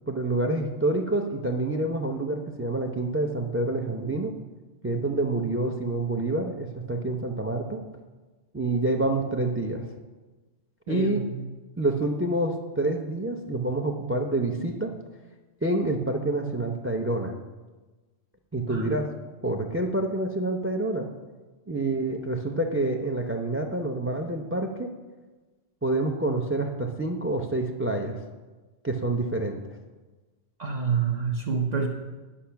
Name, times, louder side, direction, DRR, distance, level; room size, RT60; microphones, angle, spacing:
voice 1, 0.1-4.4 4.8-7.8 8.5-9.9 10.9-11.2 11.8-14.9 15.6-17.3 18.5-19.1 19.4-21.1 21.7-24.9 25.8-28.2 28.8-29.6, right 2 dB, 20° right, 4 dB, 0.3 m, -27 dB
voice 2, 10.9-11.3 18.7-18.9 30.6-31.9, right 5 dB, 40° right, 1 dB, 0.7 m, -27 dB
10.0 x 6.3 x 5.8 m, 1.3 s
omnidirectional pair, 1.3 m